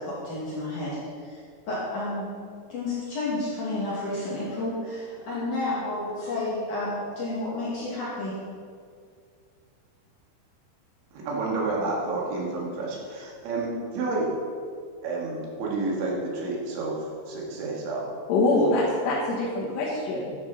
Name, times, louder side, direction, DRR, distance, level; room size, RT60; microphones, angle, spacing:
voice 1, 0.0-1.4 1.7-2.3 2.7-8.3, left 2 dB, 50° left, -8 dB, 2.9 m, -31 dB
voice 2, 11.1-14.3 15.0-18.1, right 3 dB, 75° right, -3 dB, 4.2 m, -30 dB
voice 3, 18.3-20.4, left 2 dB, 85° left, -7 dB, 4.1 m, -24 dB
11.5 x 11.0 x 4.1 m, 2.1 s
omnidirectional pair, 5.5 m